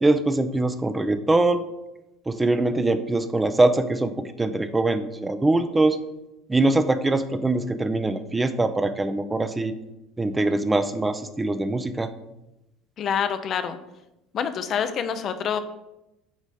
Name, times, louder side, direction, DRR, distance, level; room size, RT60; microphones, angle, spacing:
voice 1, 0.0-1.6 2.3-4.1 4.4-6.0 6.5-9.7 10.2-12.1, right 2 dB, 15° right, 10 dB, 0.5 m, -22 dB
voice 2, 13.0-13.8 14.3-15.6, left 7 dB, 50° left, 9 dB, 0.6 m, -26 dB
7.2 x 3.1 x 5.3 m, 0.93 s
hypercardioid pair, 70°, 0 cm